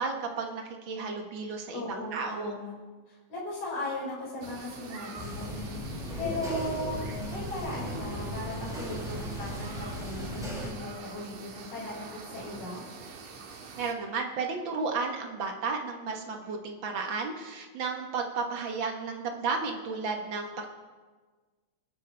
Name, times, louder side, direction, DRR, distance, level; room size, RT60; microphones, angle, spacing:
voice 1, 0.0-2.5 13.8-20.7, right 4 dB, 50° right, 2 dB, 1.6 m, -33 dB
voice 2, 1.7-2.7 3.1-5.8 6.2-7.0 7.3-12.0 12.3-12.9, left 1 dB, 70° left, -7 dB, 6.8 m, -37 dB
sound 1, 4.4-13.9, right 4 dB, 85° right, 2.9 m, -45 dB
sound 2, 5.1-10.7, equal, ahead, 5.4 m, -37 dB
22.5 x 12.5 x 3.4 m, 1.4 s
omnidirectional pair, 3.5 m